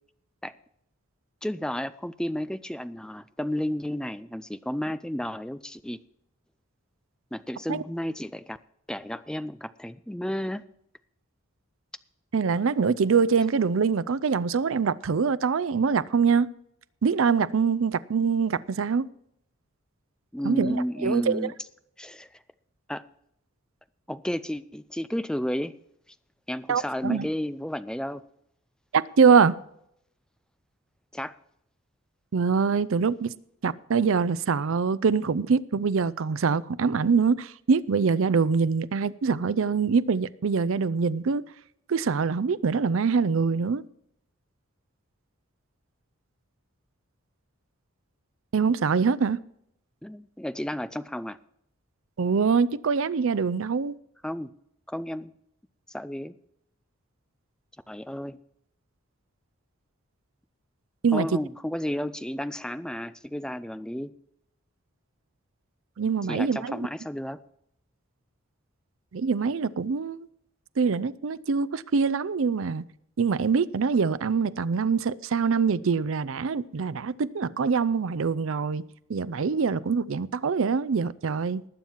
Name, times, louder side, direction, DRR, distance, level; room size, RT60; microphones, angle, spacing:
voice 1, 1.4-6.0 7.3-8.6 8.9-10.6 20.3-21.5 22.0-22.3 22.9-23.0 24.1-25.8 26.5-28.2 31.1-31.3 50.0-51.4 54.2-54.5 54.9-55.3 55.9-56.3 57.9-58.4 61.1-64.1 66.3-67.4, equal, 5° left, 0.4 m, -32 dB
voice 2, 12.3-16.5 17.0-19.1 20.4-21.5 26.7-27.3 28.9-29.6 32.3-33.3 33.6-41.4 41.9-43.8 48.5-49.4 52.2-53.9 61.0-61.4 66.0-66.9 69.1-70.3 70.8-72.8 73.2-78.8 79.1-81.7, right 5 dB, 70° right, 0.5 m, -24 dB
19.5 x 7.4 x 4.5 m
head